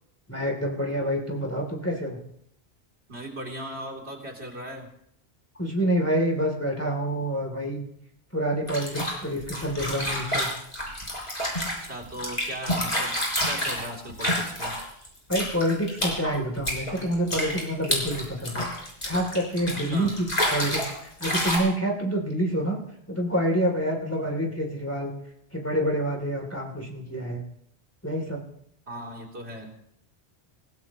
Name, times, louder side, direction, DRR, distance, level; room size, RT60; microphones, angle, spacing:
voice 1, 0.3-2.2 5.6-7.8 8.3-10.5 15.3-18.6 19.0-22.8 23.1-25.1 25.5-27.4 28.0-28.4, equal, 15° left, -1 dB, 3.0 m, -27 dB
voice 2, 3.1-4.9 11.8-13.2 13.4-14.8 19.9-20.1 28.9-29.7, right 1 dB, 80° right, -1 dB, 3.4 m, -37 dB
sound 1, 8.7-15.1 15.3-21.0 21.2-21.6, equal, 40° left, 5.4 m, -29 dB
26.5 x 16.5 x 3.0 m, 0.70 s
omnidirectional pair, 1.1 m